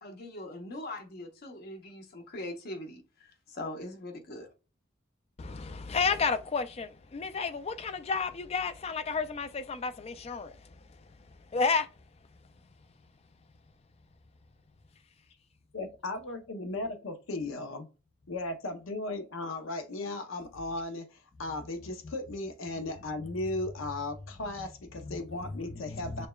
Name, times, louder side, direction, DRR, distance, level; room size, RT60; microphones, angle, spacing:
voice 1, 0.0-4.5, left 1 dB, 50° left, 0.8 m, -41 dB
voice 2, 5.4-10.7 11.5-11.9 25.0-26.3, left 5 dB, 30° left, 0.3 m, -32 dB
voice 3, 15.7-17.9 18.3-26.3, left 2 dB, 85° left, 0.7 m, -36 dB
6.4 x 2.2 x 2.2 m
head